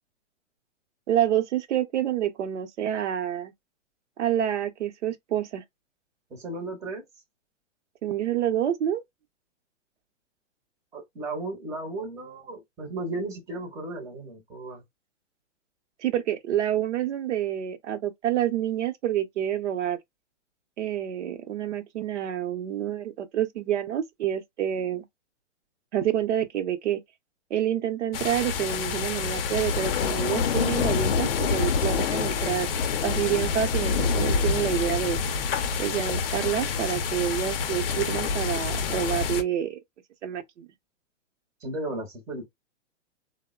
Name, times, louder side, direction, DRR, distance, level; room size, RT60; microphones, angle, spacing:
voice 1, 1.1-3.5 4.2-5.6 8.0-9.0 16.0-20.0 20.8-25.0 25.9-27.0 27.5-32.7 33.0-35.2 35.8-39.8 40.2-40.7, right 10 dB, 65° right, 0.7 m, -28 dB
voice 2, 6.3-7.0 10.9-14.8 41.6-42.5, right 2 dB, 10° right, 0.6 m, -35 dB
sound 1, 28.1-39.4, left 6 dB, 50° left, 0.5 m, -27 dB
3.4 x 2.1 x 2.3 m
hypercardioid pair, 135°, 37 cm